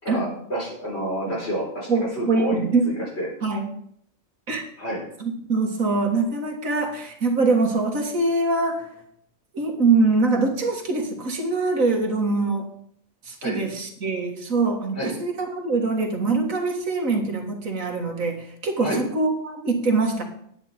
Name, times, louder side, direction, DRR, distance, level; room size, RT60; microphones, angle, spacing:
voice 1, 0.0-1.9 2.2-2.6 2.8-3.3 4.8-5.0 13.4-13.6 15.0-15.1 18.8-19.0, equal, 50° left, -4 dB, 4.5 m, -28 dB
voice 2, 1.9-2.9 3.4-3.7 4.5-4.6 5.2-8.9 9.5-12.7 13.2-20.2, right 3 dB, 80° right, 2 dB, 2.1 m, -23 dB
9.9 x 9.6 x 4.4 m, 0.69 s
omnidirectional pair, 1.4 m